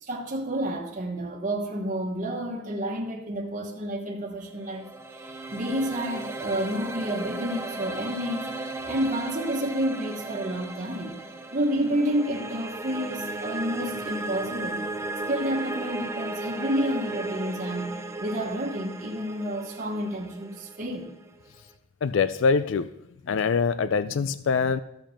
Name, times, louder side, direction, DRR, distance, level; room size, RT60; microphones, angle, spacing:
voice 1, 0.0-8.5 8.9-11.2 11.5-14.8 15.3-17.9 18.2-21.1, equal, 40° right, -1 dB, 1.2 m, -30 dB
sound 1, 4.5-21.6, right 2 dB, 15° right, 0.6 m, -36 dB
voice 2, 22.0-22.9 23.2-24.8, left 5 dB, 70° left, 14 dB, 0.4 m, -24 dB
13.5 x 5.1 x 5.8 m, 0.85 s
head